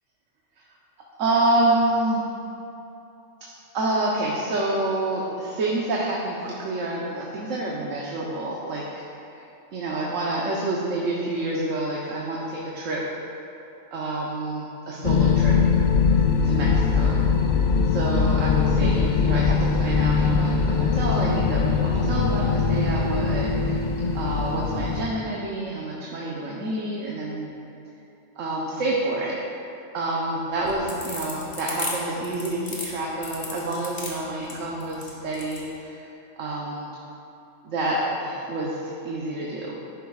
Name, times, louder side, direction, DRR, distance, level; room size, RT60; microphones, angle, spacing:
voice 1, 1.2-2.2 3.4-9.5 9.7-13.1 13.9-15.6 16.4-17.2 17.9-23.9 24.1-27.5 28.4-29.4 29.9-36.9 37.6-39.8, right 2 dB, 80° right, -4 dB, 1.3 m, -28 dB
sound 1, 15.0-25.1, left 5 dB, 65° left, 0.4 m, -21 dB
sound 2, 30.5-35.7, left 2 dB, 50° left, 1.6 m, -34 dB
11.5 x 9.6 x 2.4 m, 3.0 s
omnidirectional pair, 1.3 m